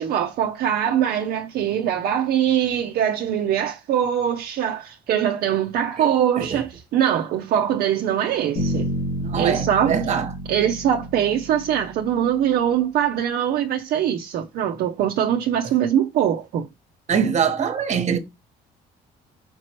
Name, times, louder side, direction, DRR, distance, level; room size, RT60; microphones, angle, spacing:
voice 1, 0.0-8.9 9.3-10.1 10.5-16.7, right 9 dB, 65° right, 0.5 m, -22 dB
Bass guitar, 8.6-12.5, right 1 dB, 85° left, 2.6 m, -30 dB
voice 2, 9.2-10.3 17.1-18.2, right 7 dB, 45° right, 1.0 m, -23 dB
5.1 x 2.9 x 2.9 m
cardioid pair, 110°, 17 cm